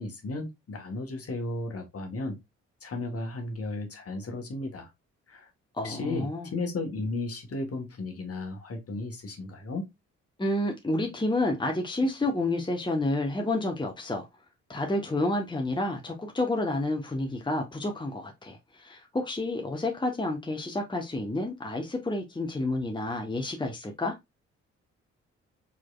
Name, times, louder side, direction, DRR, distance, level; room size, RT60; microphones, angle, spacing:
voice 1, 0.0-2.4 2.8-4.9 5.3-5.5 5.8-9.9, left 2 dB, 40° left, 1.6 m, -34 dB
voice 2, 5.8-6.5 10.4-14.3 14.7-24.2, left 2 dB, 15° left, 1.3 m, -29 dB
4.8 x 4.1 x 2.5 m
figure-of-eight pair, 40°, 36 cm